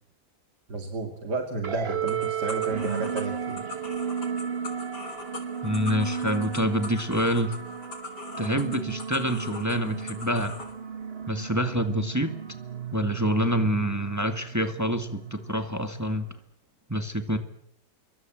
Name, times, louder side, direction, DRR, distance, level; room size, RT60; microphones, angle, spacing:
voice 1, 0.7-3.6, right 2 dB, 60° right, 5 dB, 3.0 m, -32 dB
sound 1, 1.6-16.4, right 7 dB, 35° right, 1.4 m, -34 dB
sound 2, 2.1-10.7, left 3 dB, 60° left, 4.2 m, -41 dB
voice 2, 5.6-7.6 8.4-10.6 11.3-12.4 12.9-16.3 16.9-17.4, equal, 10° right, 9 dB, 1.8 m, -26 dB
26.0 x 23.5 x 7.6 m, 0.65 s
omnidirectional pair, 2.0 m